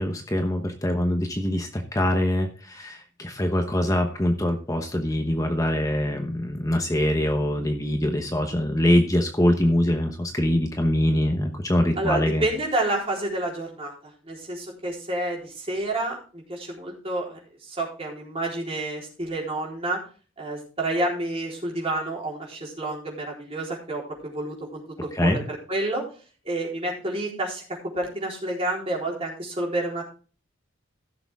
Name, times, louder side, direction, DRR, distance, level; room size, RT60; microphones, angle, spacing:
voice 1, 0.0-12.4 25.1-25.4, left 1 dB, 15° left, 4 dB, 1.0 m, -23 dB
voice 2, 12.0-13.9 14.2-20.0 20.4-26.0 26.4-27.6 27.9-30.0, right 2 dB, 30° right, -2 dB, 4.0 m, -29 dB
15.5 x 6.9 x 3.6 m, 0.37 s
head